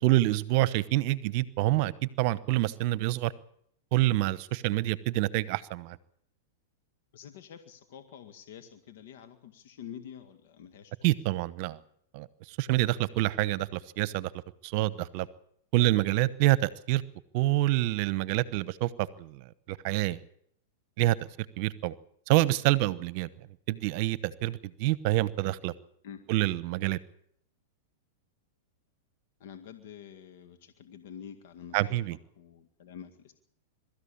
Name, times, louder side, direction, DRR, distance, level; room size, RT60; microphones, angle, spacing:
voice 1, 0.0-3.3 3.9-6.0 11.0-11.8 12.1-14.3 14.6-15.3 15.7-17.0 17.3-19.4 19.7-20.2 21.0-21.2 21.6-21.9 22.3-23.3 23.7-25.7 26.3-27.0 31.7-32.2, right 16 dB, 55° right, 1.0 m, -27 dB
voice 2, 7.1-11.0 26.0-26.2 29.4-32.0 32.4-33.3, left 8 dB, 65° left, 1.9 m, -47 dB
22.5 x 13.5 x 8.7 m
hypercardioid pair, 120°, 0 cm